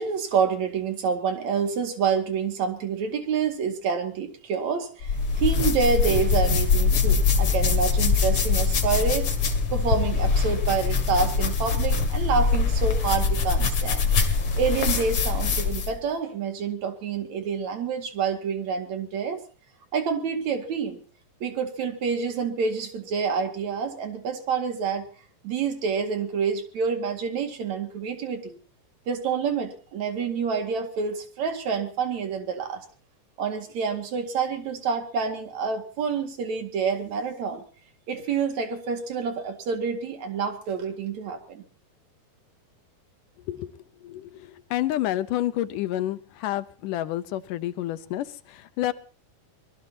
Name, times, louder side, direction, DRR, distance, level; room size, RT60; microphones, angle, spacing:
voice 1, 0.0-9.3 9.7-14.1 14.5-19.4 19.9-21.0 21.4-25.1 25.4-28.6 29.1-32.8 33.4-37.6 38.1-41.6, right 6 dB, 65° right, 6 dB, 3.3 m, -27 dB
sound 1, 5.0-16.0, left 5 dB, 45° left, 2.9 m, -23 dB
voice 2, 44.0-48.9, left 14 dB, 90° left, 13 dB, 2.5 m, -29 dB
24.5 x 20.5 x 2.9 m, 0.39 s
omnidirectional pair, 3.6 m